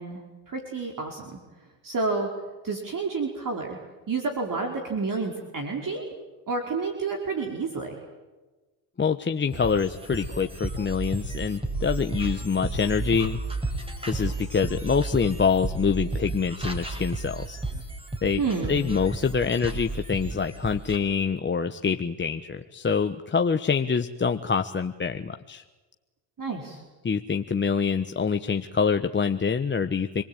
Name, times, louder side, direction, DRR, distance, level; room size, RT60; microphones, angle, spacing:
voice 1, 0.0-1.4 1.8-2.3 2.6-3.8 4.1-6.0 6.5-8.0 18.4-18.7 26.4-26.8, right 4 dB, 40° right, 1 dB, 5.0 m, -29 dB
voice 2, 9.0-13.4 14.1-17.6 18.2-18.4 18.7-25.6 27.0-30.2, left 6 dB, 20° left, 7 dB, 1.2 m, -25 dB
sound 1, 9.5-21.0, right 2 dB, 10° right, 6.0 m, -33 dB
28.0 x 20.0 x 9.0 m, 1.2 s
supercardioid pair, 80°, 50 cm